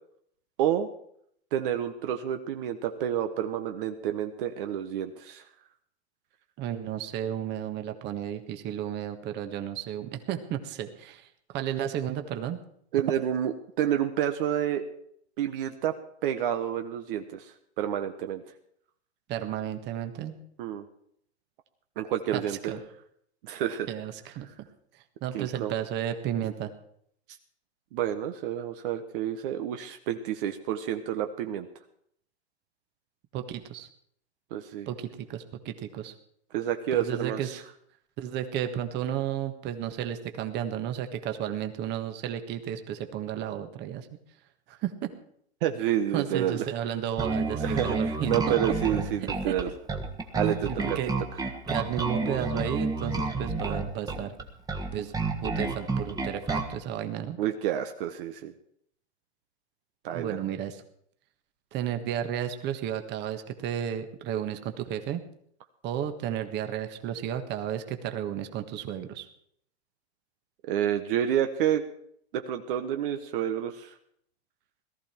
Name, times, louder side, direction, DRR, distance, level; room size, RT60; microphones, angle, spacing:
voice 1, 1.5-5.4 12.9-14.8 15.4-15.9 16.2-18.4 20.6-20.9 22.0-22.7 23.4-23.9 25.3-25.7 27.9-31.7 34.5-34.9 36.5-37.6 45.6-46.6 47.6-49.7 50.3-51.0 57.4-58.5 60.0-60.4 70.7-71.8 72.3-73.9, right 10 dB, 55° right, 7 dB, 1.3 m, -29 dB
voice 2, 6.6-12.6 19.3-20.4 22.3-22.8 23.9-24.5 25.2-26.7 33.3-33.9 34.9-36.1 36.9-37.6 38.2-44.2 44.7-45.1 46.1-48.5 49.4-49.5 50.7-51.1 51.7-54.3 54.9-55.1 55.4-57.4 60.1-60.8 61.7-65.2 65.8-69.3, right 10 dB, 30° right, 7 dB, 1.5 m, -33 dB
Bass guitar, 47.2-56.8, right 3 dB, 10° right, 1.5 m, -30 dB
18.5 x 13.5 x 4.5 m, 0.68 s
hypercardioid pair, 135°, 33 cm